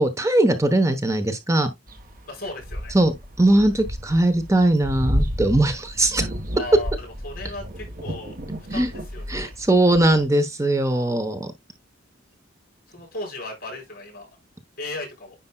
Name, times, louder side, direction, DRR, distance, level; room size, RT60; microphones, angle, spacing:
voice 1, 0.0-1.7 2.9-6.3 6.6-6.7 8.7-8.9 9.3-11.5, right 1 dB, 15° right, 1.0 m, -20 dB
sound 1, 1.9-10.3, equal, 45° right, 1.3 m, -32 dB
voice 2, 2.2-2.9 6.5-8.3 8.7-9.5 12.9-14.3 14.8-15.3, left 2 dB, 50° left, 5.0 m, -36 dB
9.9 x 5.2 x 2.3 m
head